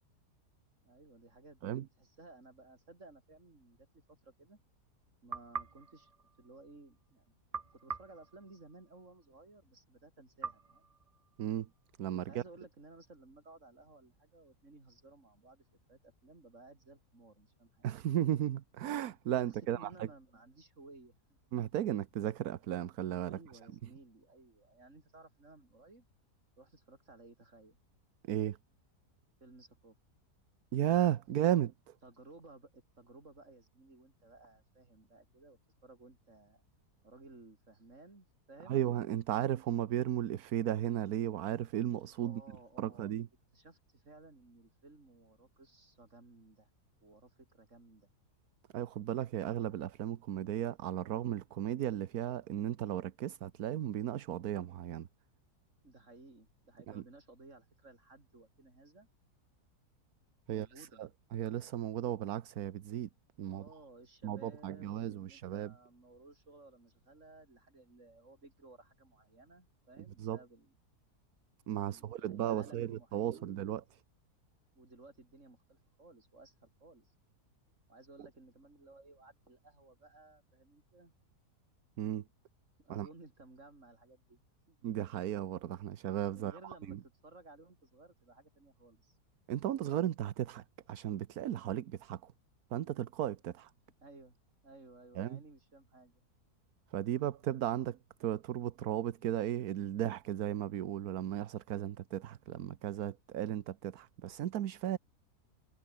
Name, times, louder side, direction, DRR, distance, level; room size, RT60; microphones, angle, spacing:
voice 1, 0.8-4.6 5.2-7.4 7.7-10.9 12.3-17.9 19.4-21.2 23.3-26.0 26.6-27.8 29.4-30.0 32.0-36.6 37.0-38.8 42.2-43.1 43.5-46.7 47.0-48.1 55.8-59.1 60.5-61.0 63.4-70.8 71.8-73.5 74.7-77.1 77.9-81.1 82.8-84.4 84.7-84.8 86.3-89.2 94.0-94.4 94.6-96.2, right 2 dB, 50° right, 4.7 m, -57 dB
sound 1, 5.3-6.9 7.5-9.1 10.4-11.8, right 5 dB, 30° right, 0.7 m, -45 dB
voice 2, 11.4-11.7 12.0-12.4 17.8-20.1 21.5-23.4 28.3-28.6 30.7-31.9 38.7-42.4 42.8-43.3 48.7-55.1 56.9-57.0 60.5-63.1 63.4-63.6 64.2-65.7 70.2-70.4 71.7-73.8 82.0-82.2 82.9-83.1 84.8-87.0 89.5-92.3 92.7-93.7 95.1-95.4 96.9-105.0, right 11 dB, 70° right, 1.3 m, -35 dB
omnidirectional pair, 1.7 m